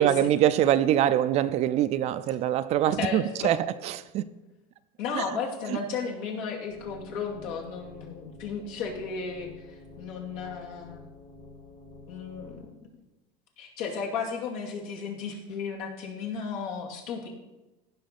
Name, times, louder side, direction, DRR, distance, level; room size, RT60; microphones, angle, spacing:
voice 1, 0.0-4.3 5.1-5.2 5.7-5.8, right 11 dB, 40° right, 0.4 m, -24 dB
voice 2, 3.0-3.6 5.0-11.0 12.1-12.7 13.6-17.3, left 5 dB, 75° left, 2.5 m, -34 dB
sound 1, 6.7-12.7, left 3 dB, 45° left, 2.7 m, -49 dB
16.0 x 5.9 x 4.2 m
cardioid pair, 155°, 18 cm